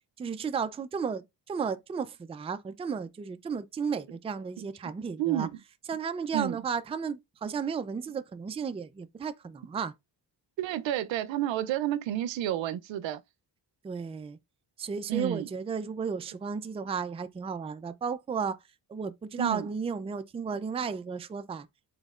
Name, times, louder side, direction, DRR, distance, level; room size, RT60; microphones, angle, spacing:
voice 1, 0.2-5.5 5.9-9.9 13.8-14.4 14.8-18.6 18.9-21.7, right 6 dB, 15° right, 0.3 m, -34 dB
voice 2, 5.2-5.6 6.3-6.6 10.6-13.2 15.1-15.5 19.4-19.7, right 12 dB, 85° right, 0.6 m, -30 dB
5.2 x 3.8 x 2.4 m
cardioid pair, 85°, 44 cm